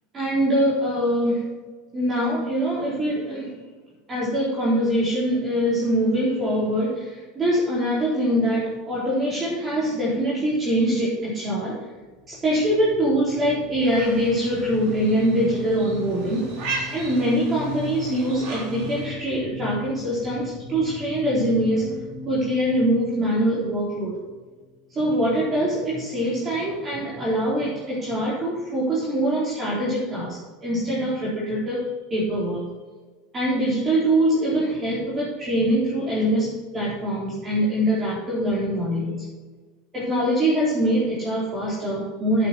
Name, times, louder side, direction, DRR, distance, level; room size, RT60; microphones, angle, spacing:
voice 1, 0.1-1.4 1.9-3.5 4.1-11.8 12.3-16.5 16.9-21.9 22.3-24.2 24.9-32.7 33.3-39.3 39.9-42.5, right 1 dB, 25° right, -7 dB, 4.2 m, -23 dB
sound 1, 12.3-24.7, left 5 dB, 10° right, 3.2 m, -38 dB
sound 2, 13.8-19.1, right 3 dB, 55° right, 3.9 m, -37 dB
12.0 x 8.6 x 4.5 m, 1.4 s
hypercardioid pair, 80°, 0 cm